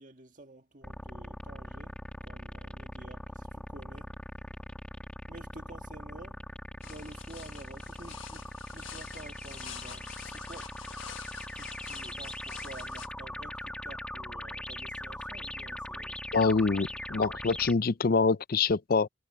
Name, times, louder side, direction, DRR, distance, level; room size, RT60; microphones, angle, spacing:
voice 1, 0.0-4.1 5.3-6.5 6.8-10.7 11.5-16.2, right 2 dB, 40° right, 1.8 m, -50 dB
sound 1, 0.8-17.7, left 1 dB, 5° left, 2.2 m, -41 dB
sound 2, 6.8-13.1, left 9 dB, 75° left, 1.4 m, -47 dB
voice 2, 16.3-19.1, left 4 dB, 45° left, 0.5 m, -25 dB
head